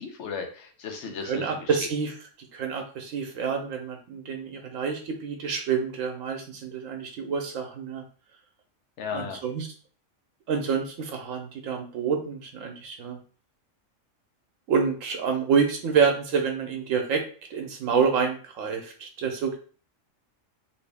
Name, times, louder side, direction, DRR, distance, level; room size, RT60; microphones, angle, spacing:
voice 1, 0.0-1.8 9.0-9.4, left 5 dB, 65° left, 4 dB, 0.9 m, -35 dB
voice 2, 1.2-2.1 2.5-8.0 9.1-9.7 10.5-13.2 14.7-17.2 17.5-19.6, right 6 dB, 90° right, 4 dB, 1.1 m, -27 dB
3.0 x 2.6 x 3.4 m, 0.40 s
omnidirectional pair, 1.3 m